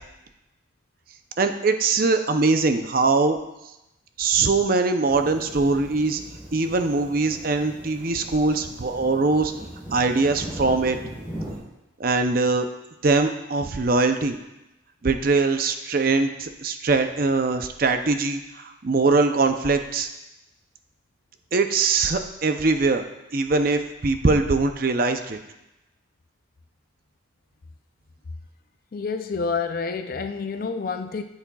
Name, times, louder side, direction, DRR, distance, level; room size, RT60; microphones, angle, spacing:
voice 1, 1.4-3.4 4.2-6.2 6.5-9.5 9.9-11.0 12.0-12.7 13.0-14.4 15.0-20.1 21.5-23.0 23.3-25.4, right 3 dB, 45° right, 7 dB, 0.5 m, -22 dB
sound 1, 5.1-11.6, right 1 dB, 5° right, 2.8 m, -39 dB
voice 2, 28.9-31.2, left 5 dB, 45° left, 8 dB, 0.4 m, -28 dB
9.8 x 8.5 x 2.3 m, 0.94 s
head